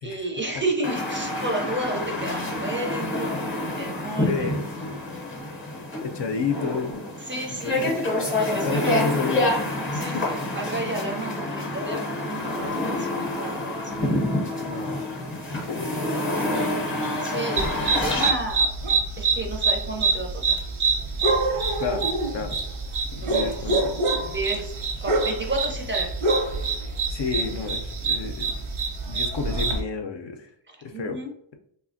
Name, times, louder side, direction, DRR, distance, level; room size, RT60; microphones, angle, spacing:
voice 1, 0.0-3.4 3.8-4.5 7.2-7.8 8.4-9.3 9.9-13.8 15.7-16.0 17.2-18.7 19.2-20.6 23.2-23.6 24.3-24.7 25.0-26.1 30.7-31.3, right 2 dB, 25° right, 1 dB, 0.4 m, -32 dB
sound 1, 0.8-18.3, left 1 dB, 25° left, 0.7 m, -28 dB
voice 2, 4.3-5.0 6.0-7.0 7.5-9.5 9.9-10.3 14.6-15.2 15.5-16.3 21.8-22.1 22.3-22.6 23.1-23.8 27.1-28.5 29.1-30.5 30.8-31.2, left 5 dB, 65° left, 5 dB, 0.5 m, -31 dB
sound 2, 17.6-29.8, right 3 dB, 80° right, 0.8 m, -25 dB
3.2 x 2.1 x 2.5 m, 0.68 s
wide cardioid pair, 145°, 47 cm